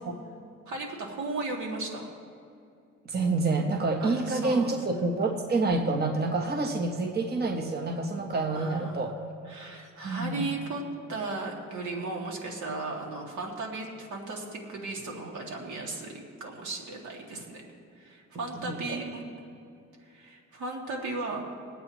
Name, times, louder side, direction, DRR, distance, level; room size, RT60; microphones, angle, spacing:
voice 1, 0.7-2.1 4.0-4.8 8.5-9.1 9.5-10.8 11.1-16.1 16.4-17.6 18.0-19.2 20.1-21.4, right 3 dB, 75° right, 0 dB, 2.3 m, -36 dB
voice 2, 3.0-9.1 10.0-10.5 18.5-19.0, right 3 dB, 35° right, 3 dB, 1.2 m, -28 dB
23.0 x 8.5 x 3.0 m, 2.6 s
cardioid pair, 90°, 30 cm